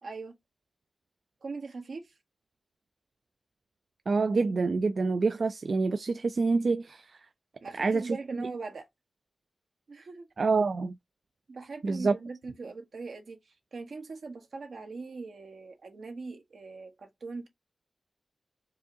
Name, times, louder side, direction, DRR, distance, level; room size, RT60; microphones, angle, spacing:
voice 1, 0.0-0.3 1.4-2.1 7.6-8.9 9.9-10.3 11.5-17.5, right 4 dB, 75° right, 1.1 m, -40 dB
voice 2, 4.1-7.0 7.8-8.2 10.4-11.0 11.8-12.1, right 4 dB, 55° right, 0.3 m, -26 dB
4.7 x 2.6 x 2.7 m
wide cardioid pair, 115°, 0 cm